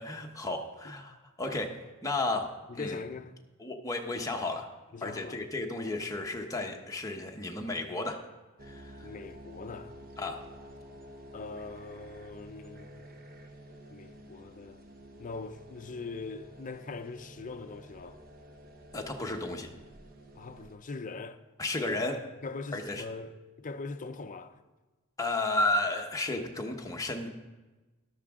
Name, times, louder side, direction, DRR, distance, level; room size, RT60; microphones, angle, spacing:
voice 1, 0.0-3.0 3.6-4.7 5.0-8.2 8.6-9.1 10.2-10.4 18.9-19.7 21.6-22.2 22.7-23.0 25.2-27.3, left 2 dB, 15° left, 1.0 m, -33 dB
voice 2, 2.7-3.3 4.9-5.4 9.0-10.0 11.3-13.1 13.9-14.8 15.2-18.2 20.4-21.4 22.4-24.6, left 3 dB, 35° left, 0.6 m, -41 dB
sound 1, 8.6-20.8, equal, 40° right, 0.9 m, -50 dB
13.0 x 11.5 x 3.7 m
head